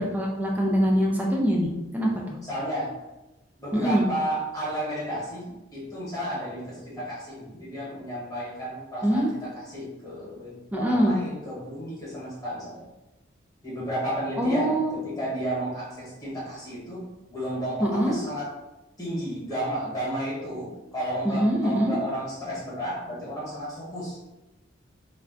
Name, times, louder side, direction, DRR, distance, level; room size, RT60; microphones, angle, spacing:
voice 1, 0.0-2.4 3.7-4.1 9.0-9.3 10.7-11.2 14.4-14.9 17.8-18.2 21.2-22.0, equal, 10° right, -1 dB, 0.3 m, -24 dB
voice 2, 2.4-2.9 3.6-12.8 13.6-18.5 19.0-24.2, right 1 dB, 20° left, -8 dB, 1.1 m, -32 dB
2.4 x 2.2 x 3.6 m, 1.0 s
head